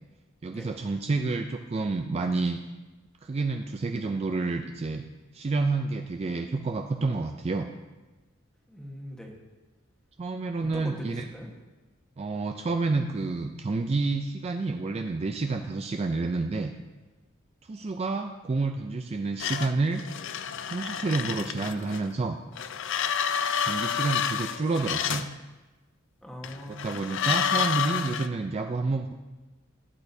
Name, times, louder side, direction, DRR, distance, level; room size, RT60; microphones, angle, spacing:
voice 1, 0.4-2.6 3.2-5.0 5.3-7.7 10.2-11.2 12.2-16.7 17.7-20.0 20.6-22.4 23.6-25.3 26.8-29.1, right 3 dB, 30° right, 5 dB, 0.3 m, -29 dB
voice 2, 8.7-9.3 10.6-11.5 26.2-27.2, equal, 5° left, 0 dB, 1.2 m, -41 dB
sound 1, 19.4-22.1 22.5-25.3 26.4-28.3, left 8 dB, 65° left, 0.4 m, -29 dB
12.0 x 8.8 x 2.7 m, 1.2 s
head